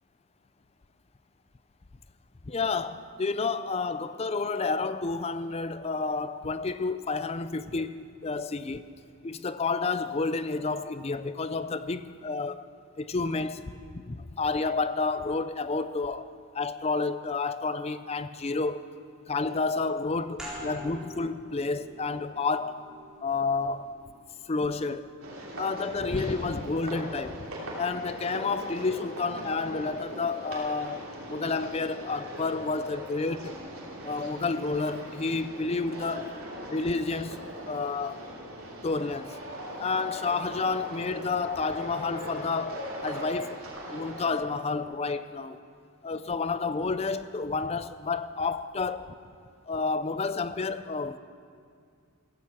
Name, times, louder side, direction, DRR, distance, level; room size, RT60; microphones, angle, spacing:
voice 1, 2.4-8.9 9.2-12.7 13.0-18.8 19.3-22.8 23.2-23.9 24.5-25.1 25.6-27.5 27.8-33.6 34.0-36.3 36.7-37.4 37.7-38.3 38.8-39.4 39.8-43.6 43.9-45.6 46.0-49.1 49.7-51.2, left 4 dB, 30° left, 0.4 m, -30 dB
sound 1, 20.4-25.7, equal, 5° right, 4.2 m, -46 dB
sound 2, 25.2-44.4, equal, 70° right, 3.1 m, -40 dB
15.5 x 14.5 x 5.9 m
head